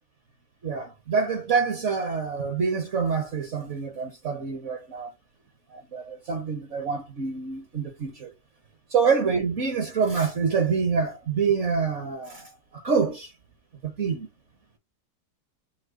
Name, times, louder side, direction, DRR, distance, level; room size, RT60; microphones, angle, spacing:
voice 1, 0.6-5.1 5.7-8.3 8.9-13.3 13.8-14.3, right 5 dB, 55° right, 1.0 m, -26 dB
5.4 x 2.2 x 3.7 m
omnidirectional pair, 1.7 m